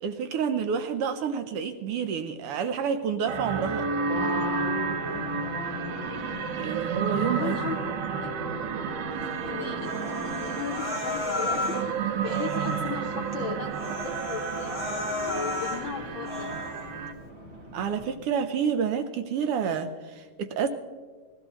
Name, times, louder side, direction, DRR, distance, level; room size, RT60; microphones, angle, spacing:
voice 1, 0.0-3.9 6.5-7.6 17.7-20.7, right 7 dB, 85° right, 8 dB, 1.2 m, -29 dB
sound 1, 3.3-17.1, right 5 dB, 70° right, 1.7 m, -31 dB
Race car auto racing, 4.1-18.1, equal, 35° right, 1.1 m, -40 dB
voice 2, 7.2-8.4 9.1-9.9 10.4-14.8 15.3-16.5, left 6 dB, 65° left, 0 dB, 1.2 m, -37 dB
Human voice, 9.8-11.9 12.2-12.9 13.3-13.4 13.7-15.8 16.2-16.8, left 2 dB, ahead, 3.0 m, -33 dB
20.5 x 15.0 x 3.1 m, 1.5 s
omnidirectional pair, 3.4 m